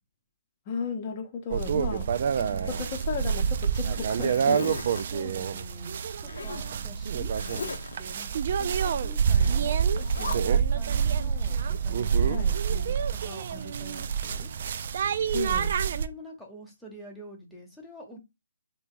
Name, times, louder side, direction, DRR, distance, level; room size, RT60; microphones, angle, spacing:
voice 1, 0.7-2.1 2.7-5.0 12.3-12.6 15.3-15.8, left 5 dB, 30° left, 0.7 m, -35 dB
sound 1, 1.5-16.1, right 7 dB, 50° right, 0.3 m, -27 dB
voice 2, 2.4-2.8 4.8-8.3 8.6-14.5 16.0-18.2, equal, 5° right, 0.9 m, -46 dB
Zipper (clothing), 2.5-3.5 3.9-5.0 6.3-6.7 7.3-8.0 9.3-9.6 10.0-10.4, left 5 dB, 70° left, 0.7 m, -38 dB
3.0 x 2.7 x 3.6 m
hypercardioid pair, 150°, 0 cm